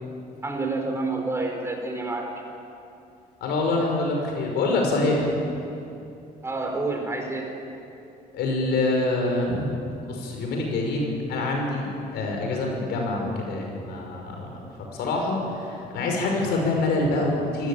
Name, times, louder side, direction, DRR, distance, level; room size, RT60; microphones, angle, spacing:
voice 1, 0.4-2.3 6.4-7.5, right 3 dB, 15° right, 2 dB, 4.2 m, -28 dB
voice 2, 3.4-5.3 8.3-9.7 10.0-11.9 12.1-14.5 14.9-17.7, left 2 dB, 80° left, 1 dB, 6.1 m, -25 dB
25.5 x 15.0 x 8.9 m, 2.7 s
cardioid pair, 110°, 17 cm